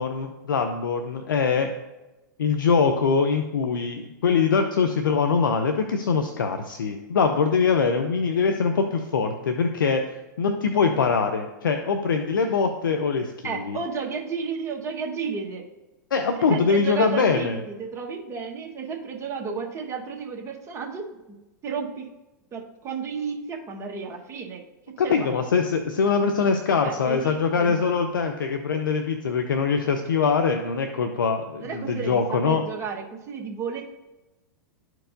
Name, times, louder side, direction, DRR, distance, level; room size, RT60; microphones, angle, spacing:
voice 1, 0.0-1.7 2.4-10.0 10.4-13.8 16.1-17.6 25.0-32.6, left 5 dB, 90° left, 6 dB, 0.6 m, -23 dB
voice 2, 13.4-15.6 16.5-21.1 21.6-22.1 22.5-24.6 25.0-25.4 26.8-27.9 31.6-33.8, right 5 dB, 25° right, 1 dB, 1.3 m, -32 dB
12.0 x 4.6 x 2.6 m, 1.1 s
hypercardioid pair, 115°, 11 cm